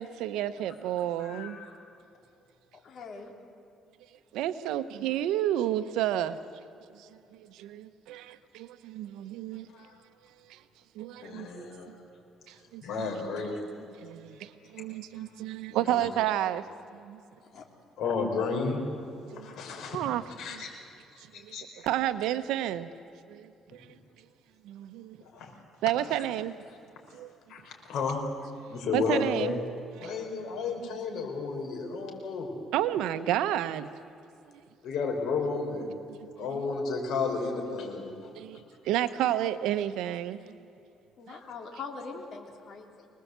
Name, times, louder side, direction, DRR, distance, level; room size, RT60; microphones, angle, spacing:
voice 1, 0.0-1.6 4.3-6.4 6.9-9.7 10.4-10.6 10.9-11.9 12.5-13.1 14.0-17.2 19.3-19.5 19.9-20.2 20.5-20.6 21.2-21.6 21.8-22.9 23.3-24.0 24.6-25.2 25.8-26.7 27.1-27.4 28.9-29.6 30.0-30.1 32.7-33.9 34.5-34.6 36.2-36.6 38.3-40.6, right 12 dB, 85° right, 0.9 m, -31 dB
voice 2, 1.2-1.7 9.7-10.0 11.2-12.0 12.8-13.6 15.7-16.1 18.0-18.8 19.3-20.0 20.4-20.7 21.3-21.9 25.2-25.5 27.5-28.2 28.7-29.6 30.0-32.5 34.8-35.9 36.4-38.3, left 4 dB, 65° left, 5.2 m, -32 dB
voice 3, 2.7-3.3 17.4-17.6 41.2-43.1, left 4 dB, 50° left, 3.3 m, -42 dB
24.5 x 20.0 x 8.1 m
cardioid pair, 125°, 0 cm